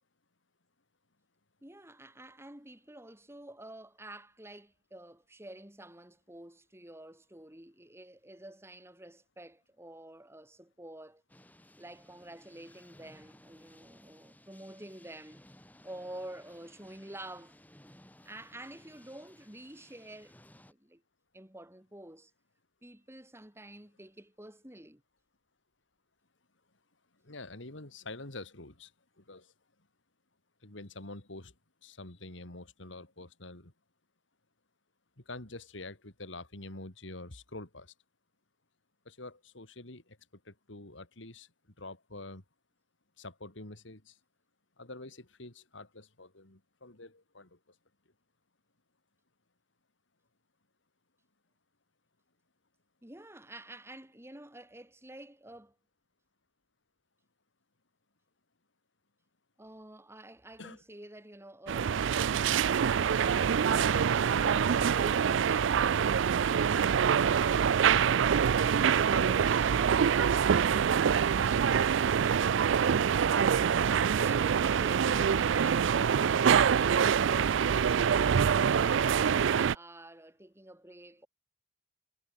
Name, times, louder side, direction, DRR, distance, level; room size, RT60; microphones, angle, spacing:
voice 1, 1.6-11.2 11.8-15.4 15.8-17.6 18.3-20.3 20.7-21.0 21.3-22.3 22.8-25.0 53.0-55.7 59.6-61.9 77.2-81.3, right 1 dB, 15° right, 4.0 m, -49 dB
sound 1, 11.3-20.7, left 1 dB, 10° left, 5.0 m, -59 dB
voice 2, 27.2-28.9 29.2-29.5 30.6-31.5 31.8-33.7 35.2-37.9 39.0-40.2 40.4-41.5 41.8-42.4 43.2-44.2 44.8-47.7 60.6-60.8 64.3-64.8 69.1-69.4 70.5-70.7, left 2 dB, 65° left, 2.9 m, -46 dB
sound 2, 61.7-79.8, right 7 dB, 65° right, 0.4 m, -25 dB
head